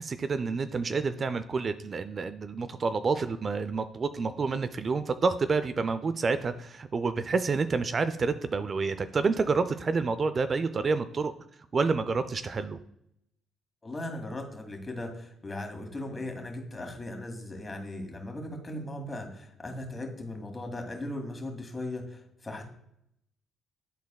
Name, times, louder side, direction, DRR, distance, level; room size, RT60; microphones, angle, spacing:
voice 1, 0.0-11.3 11.7-12.8, right 4 dB, 45° right, 11 dB, 0.4 m, -28 dB
voice 2, 13.8-22.6, left 1 dB, 30° left, 4 dB, 1.9 m, -38 dB
11.5 x 4.1 x 2.3 m, 0.75 s
supercardioid pair, 60°, 0 cm